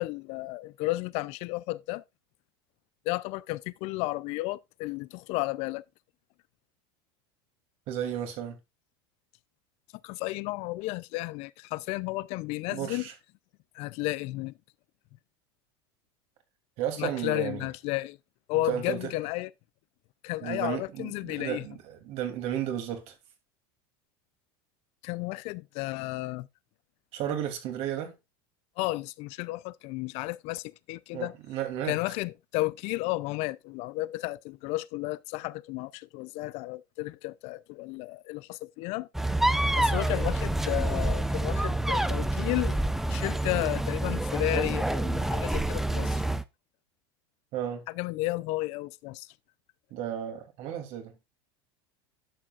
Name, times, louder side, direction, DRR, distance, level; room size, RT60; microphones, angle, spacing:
voice 1, 0.0-2.0 3.1-5.8 10.0-13.1 13.7-14.5 17.0-18.2 18.5-19.5 20.2-21.7 25.0-26.5 28.8-31.3 31.9-39.1 39.8-42.8 43.1-46.2 47.9-49.3, left 19 dB, 55° left, 0.6 m, -33 dB
voice 2, 7.9-8.6 12.7-13.1 16.8-17.7 18.7-19.1 20.4-23.1 27.1-28.2 31.1-32.0 47.5-47.8 49.9-51.1, right 10 dB, 55° right, 3.0 m, -33 dB
sound 1, 39.1-46.4, right 1 dB, 5° right, 0.6 m, -27 dB
11.0 x 7.5 x 2.5 m
supercardioid pair, 105°, 13 cm